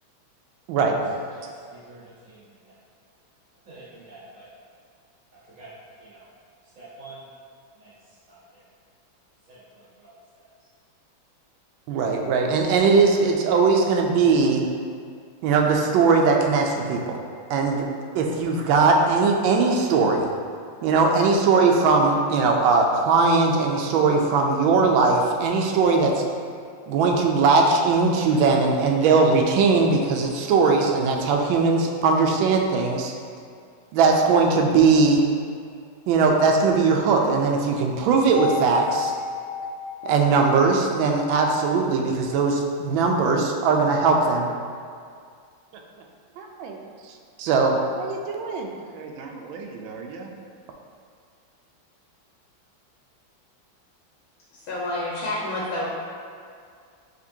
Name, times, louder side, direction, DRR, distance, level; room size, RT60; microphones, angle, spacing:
voice 1, 1.5-2.7 3.7-4.5 5.6-5.7 6.0-6.3 6.8-7.2 7.7-7.9 8.3-8.6 9.5-10.4, right 2 dB, 50° right, -11 dB, 1.1 m, -48 dB
voice 2, 11.9-14.6 15.4-17.2 17.5-17.9 18.1-20.3 20.8-26.2 26.9-33.1 33.9-35.2 36.1-39.1 40.0-44.5 46.4-46.8 47.4-50.3, right 4 dB, 80° right, 1 dB, 1.3 m, -20 dB
sound 1, 38.3-42.3, left 4 dB, 60° left, 1.1 m, -33 dB
voice 3, 54.5-55.9, left 1 dB, 80° left, -6 dB, 1.6 m, -29 dB
5.0 x 3.6 x 2.7 m, 2.2 s
omnidirectional pair, 2.2 m